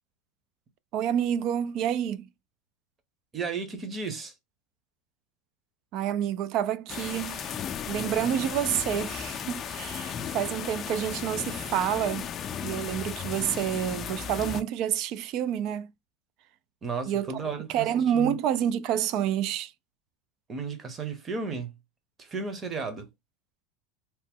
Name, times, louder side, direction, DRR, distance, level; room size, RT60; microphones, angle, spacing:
voice 1, 0.9-2.3 5.9-7.5 7.9-12.3 12.6-15.9 17.1-17.3 17.7-19.7, right 10 dB, 55° right, 0.3 m, -28 dB
voice 2, 3.3-4.3 16.8-18.4 20.5-21.7 22.2-23.1, right 4 dB, 25° right, 0.9 m, -34 dB
sound 1, 6.9-14.6, left 8 dB, 35° left, 0.4 m, -35 dB
2.9 x 2.1 x 3.5 m
supercardioid pair, 120°, 0 cm